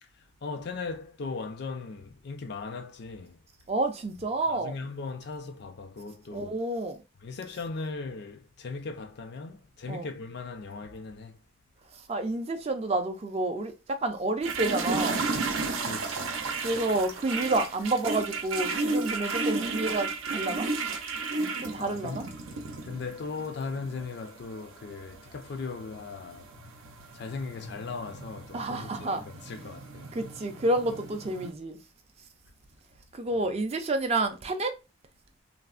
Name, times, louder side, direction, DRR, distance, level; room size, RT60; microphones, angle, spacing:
voice 1, 0.2-3.4 4.5-6.6 7.2-11.4 15.8-16.5 21.8-22.2 22.8-26.5 27.1-30.1, left 4 dB, 50° left, 0.4 m, -38 dB
voice 2, 3.7-4.7 6.3-7.0 9.9-10.1 11.9-15.2 16.6-20.7 21.6-22.3 28.5-29.2 30.1-31.8 33.1-34.7, right 2 dB, 30° right, 0.4 m, -29 dB
sound 1, 14.4-31.5, right 3 dB, 80° right, 0.6 m, -34 dB
3.2 x 2.0 x 2.4 m
head